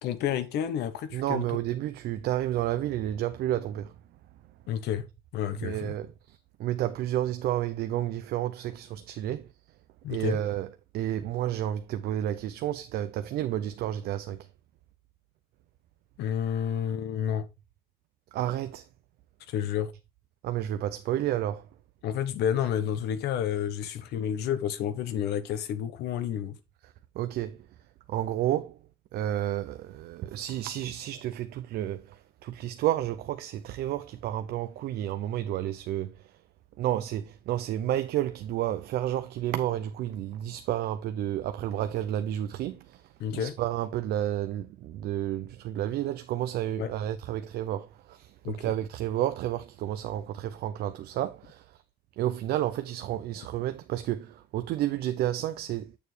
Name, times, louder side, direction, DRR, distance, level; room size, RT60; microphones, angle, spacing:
voice 1, 0.0-1.6 4.7-5.0 5.3-5.9 10.0-10.4 16.2-17.5 19.5-19.9 22.0-26.6 43.2-43.5 46.8-46.9 48.4-48.7, left 9 dB, 80° left, 1.0 m, -30 dB
voice 2, 1.1-3.9 5.6-9.5 10.1-10.7 10.9-14.4 18.3-18.8 20.4-21.7 27.2-27.6 28.1-28.8 29.1-36.3 36.8-43.0 43.3-51.7 52.2-55.9, right 12 dB, 70° right, 0.5 m, -31 dB
7.0 x 6.8 x 3.2 m
cardioid pair, 110°, 17 cm